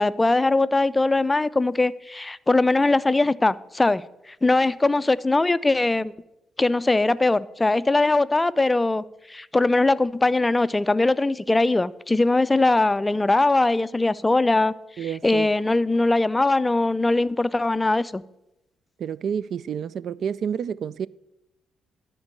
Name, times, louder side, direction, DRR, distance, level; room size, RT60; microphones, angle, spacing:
voice 1, 0.0-4.0 4.4-6.1 6.6-18.2, left 2 dB, 15° left, 0.4 m, -21 dB
voice 2, 15.0-15.5 19.0-21.1, right 8 dB, 60° right, 0.3 m, -29 dB
12.5 x 4.5 x 8.2 m
cardioid pair, 90°, 0 cm